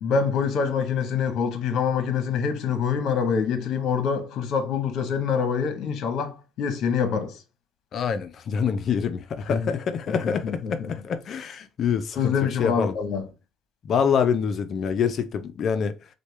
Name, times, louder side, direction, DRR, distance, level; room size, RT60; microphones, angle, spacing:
voice 1, 0.0-7.4 9.5-9.7 10.1-10.9 12.2-13.3, left 6 dB, 65° left, 0.9 m, -25 dB
voice 2, 7.9-12.3 12.6-12.9 13.8-15.9, left 7 dB, 50° left, 0.4 m, -26 dB
6.3 x 2.2 x 3.2 m
cardioid pair, 110°, 0 cm